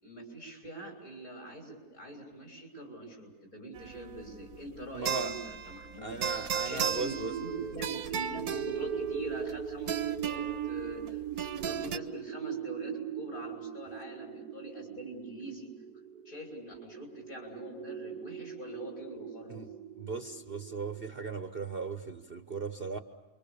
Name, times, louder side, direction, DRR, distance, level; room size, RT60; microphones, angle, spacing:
voice 1, 0.0-6.2 6.6-15.7 16.3-19.6, right 1 dB, 55° left, 2 dB, 7.1 m, -44 dB
sound 1, 3.7-12.0, right 8 dB, 65° right, 1.5 m, -37 dB
voice 2, 4.9-5.3 6.0-7.3 19.5-19.7 20.0-23.0, right 4 dB, 40° right, 8 dB, 1.1 m, -37 dB
sound 2, 6.8-21.1, right 8 dB, 85° right, 1.7 m, -40 dB
29.0 x 24.5 x 7.0 m, 1.2 s
omnidirectional pair, 1.7 m